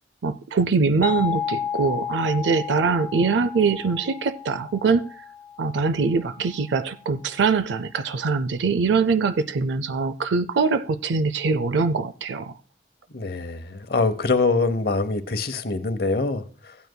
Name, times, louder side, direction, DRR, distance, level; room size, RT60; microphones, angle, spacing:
voice 1, 0.2-5.1 5.6-12.5, right 4 dB, 80° right, 13 dB, 0.4 m, -23 dB
sound 1, 1.0-6.5, left 8 dB, 10° left, 1.4 m, -33 dB
voice 2, 13.1-16.8, left 3 dB, 55° left, 11 dB, 0.8 m, -24 dB
16.5 x 9.4 x 2.2 m, 0.37 s
head